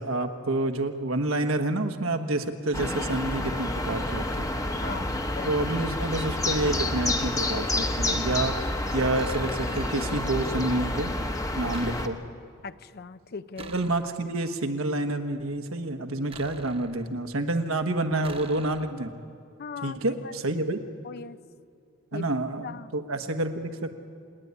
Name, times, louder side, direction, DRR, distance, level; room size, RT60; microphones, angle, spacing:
voice 1, 0.0-4.5 5.5-8.5 8.9-11.1 11.6-12.2 13.6-19.1 19.8-20.8 22.1-23.9, right 2 dB, 85° right, 7 dB, 1.3 m, -28 dB
sound 1, 2.7-12.1, left 1 dB, 15° left, 1.0 m, -29 dB
voice 2, 4.8-5.6 12.6-13.7 19.6-20.0 20.2-20.3 21.0-21.4 22.1-22.3 22.6-22.9, left 5 dB, 50° left, 14 dB, 0.5 m, -39 dB
sound 2, 9.1-10.2 11.7-12.5 13.6-14.4 16.3-17.3 18.2-19.2, right 4 dB, 25° right, 0.8 m, -46 dB
27.5 x 9.9 x 9.6 m, 2.4 s
head